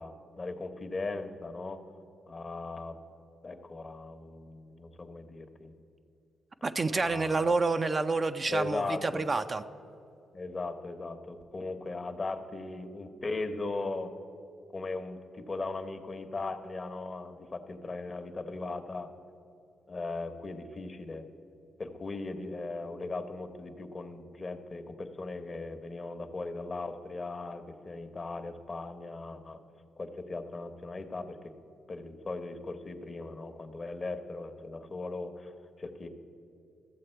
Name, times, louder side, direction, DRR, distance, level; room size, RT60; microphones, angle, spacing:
voice 1, 0.0-1.8 2.3-3.0 3.4-5.7 6.9-7.5 8.5-9.2 10.3-14.1 14.7-19.1 19.9-21.3 21.8-29.6 30.0-31.5 31.9-35.5 35.8-36.1, left 3 dB, 40° left, 8 dB, 1.0 m, -38 dB
voice 2, 6.6-9.6, right 3 dB, 40° right, 9 dB, 0.5 m, -28 dB
14.0 x 7.4 x 4.5 m, 2.6 s
hypercardioid pair, 45°, 0 cm